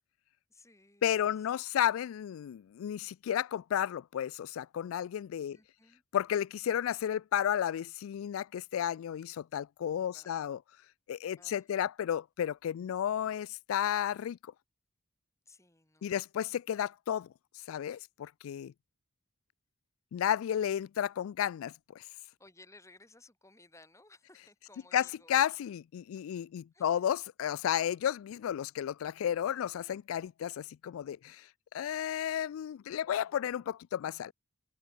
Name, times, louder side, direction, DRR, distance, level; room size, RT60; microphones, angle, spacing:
voice 1, 0.5-1.4 5.5-6.0 10.1-10.5 11.4-11.9 15.5-16.1 22.4-25.3 26.7-27.0 33.2-33.5, left 2 dB, 15° left, 5.7 m, -59 dB
voice 2, 1.0-5.6 6.1-10.6 11.1-14.4 16.0-17.3 17.7-18.7 20.1-22.0 24.9-31.4 31.7-34.3, left 10 dB, 90° left, 0.3 m, -32 dB
open air
head